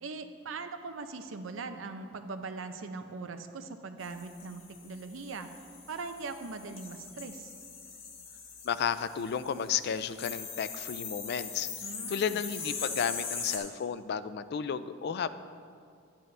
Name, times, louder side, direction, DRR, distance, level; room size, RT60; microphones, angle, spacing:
voice 1, 0.0-5.5 5.9-7.5 11.8-12.4, right 4 dB, 90° right, 8 dB, 0.7 m, -41 dB
sound 1, 4.0-13.6, left 5 dB, 85° left, 1.4 m, -41 dB
voice 2, 8.6-15.3, left 7 dB, 55° left, 13 dB, 0.4 m, -33 dB
12.0 x 9.0 x 3.3 m, 2.3 s
head